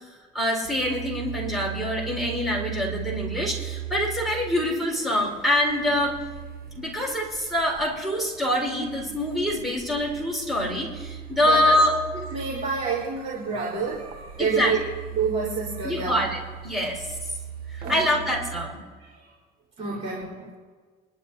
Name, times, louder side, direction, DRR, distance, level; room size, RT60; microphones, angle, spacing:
voice 1, 0.3-6.2 6.7-11.9 14.4-14.7 15.8-16.4 16.6-17.1 17.7-18.8, left 1 dB, ahead, -2 dB, 4.6 m, -25 dB
sound 1, 0.6-18.7, right 10 dB, 60° right, 1.0 m, -39 dB
voice 2, 12.3-14.8 15.1-16.2 17.8-18.1 19.0-19.3 19.8-20.5, right 5 dB, 40° right, -6 dB, 3.6 m, -28 dB
25.0 x 11.5 x 2.8 m, 1.5 s
cardioid pair, 110°, 17 cm